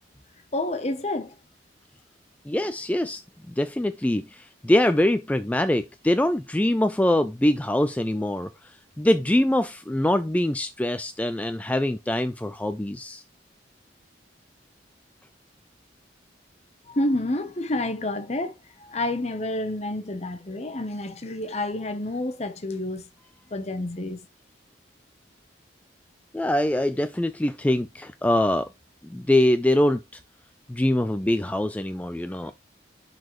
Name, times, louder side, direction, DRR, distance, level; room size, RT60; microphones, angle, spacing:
voice 1, 0.5-1.4 16.9-23.1 23.5-24.3, left 1 dB, 35° left, 0.9 m, -29 dB
voice 2, 2.5-3.2 3.5-13.2 26.3-28.7 29.0-30.0 30.7-32.5, left 1 dB, 10° left, 0.3 m, -23 dB
11.0 x 4.1 x 3.1 m
head